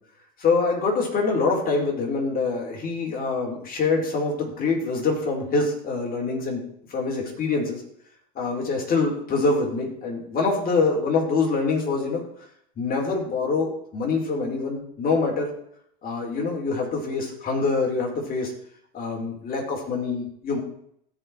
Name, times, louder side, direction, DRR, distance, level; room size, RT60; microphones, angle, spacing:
voice 1, 0.4-6.6 6.9-7.8 8.3-12.2 12.8-15.5 16.0-18.5 18.9-20.6, left 4 dB, 45° left, 0 dB, 4.8 m, -25 dB
17.0 x 5.8 x 4.7 m, 0.69 s
hypercardioid pair, 85°, 21 cm